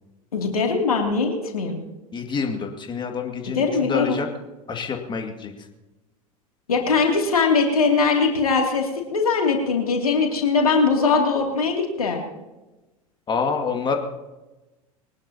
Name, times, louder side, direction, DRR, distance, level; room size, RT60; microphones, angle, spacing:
voice 1, 0.3-1.8 3.5-4.2 6.7-12.2, left 4 dB, 80° left, 1 dB, 2.8 m, -21 dB
voice 2, 2.1-4.3 4.7-5.5 13.3-13.9, left 5 dB, 25° left, 3 dB, 2.2 m, -27 dB
22.5 x 19.0 x 2.9 m, 1.1 s
figure-of-eight pair, 80°, 18 cm